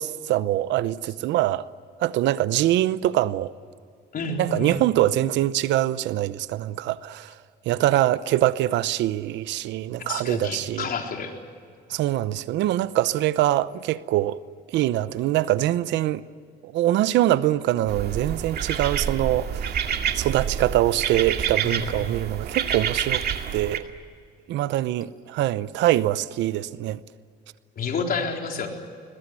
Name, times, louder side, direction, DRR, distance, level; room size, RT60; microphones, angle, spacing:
voice 1, 0.0-1.6 2.0-3.5 4.4-7.3 7.7-10.9 11.9-14.4 14.7-16.2 16.6-19.8 20.1-23.2 23.5-23.8 24.5-27.0, right 14 dB, 90° right, 0.8 m, -23 dB
voice 2, 4.1-4.8 10.0-11.3 21.6-21.9 27.8-28.7, left 4 dB, 55° left, 4.1 m, -29 dB
sound 1, 17.9-23.8, right 8 dB, 65° right, 2.1 m, -28 dB
22.0 x 21.0 x 9.7 m
cardioid pair, 110°, 18 cm